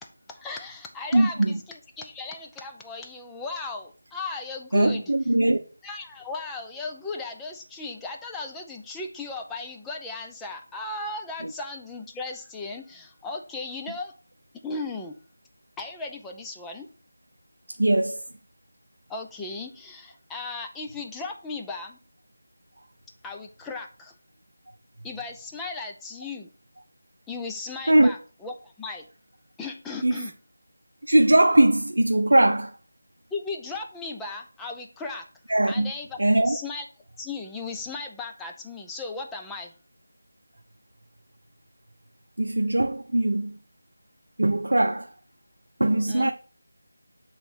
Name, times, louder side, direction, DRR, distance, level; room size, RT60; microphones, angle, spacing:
voice 1, 0.3-5.0 5.8-14.1 14.6-15.1 15.8-16.9 19.1-22.0 23.2-24.1 25.0-26.5 27.3-29.1 29.6-30.3 33.3-35.3 35.7-36.2 36.5-36.8 37.2-39.7 46.1-46.3, left 3 dB, 5° left, 0.5 m, -36 dB
voice 2, 1.1-1.6 4.7-5.6 11.4-11.5 17.8-18.2 27.9-28.1 30.0-30.3 31.1-32.7 35.5-35.9 36.2-36.6 42.4-43.6 44.4-45.1 45.8-46.3, right 1 dB, 80° right, 0.6 m, -20 dB
7.7 x 3.1 x 4.4 m
figure-of-eight pair, 170°, 0 cm